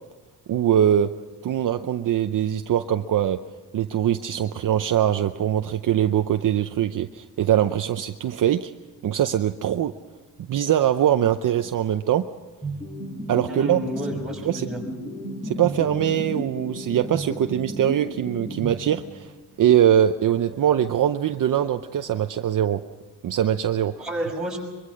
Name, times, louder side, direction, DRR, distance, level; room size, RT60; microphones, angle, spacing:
voice 1, 0.5-1.1 1.4-3.4 3.7-8.7 9.0-9.9 10.5-12.3 13.3-13.8 14.4-14.7 15.4-19.3 19.6-22.8 23.2-24.1, right 10 dB, 50° right, 8 dB, 0.7 m, -22 dB
sound 1, 12.6-19.3, right 1 dB, 15° left, 4.2 m, -34 dB
voice 2, 13.5-14.8 24.0-24.6, right 1 dB, ahead, -2 dB, 6.0 m, -30 dB
23.5 x 23.0 x 6.4 m, 1.3 s
cardioid pair, 155°, 40 cm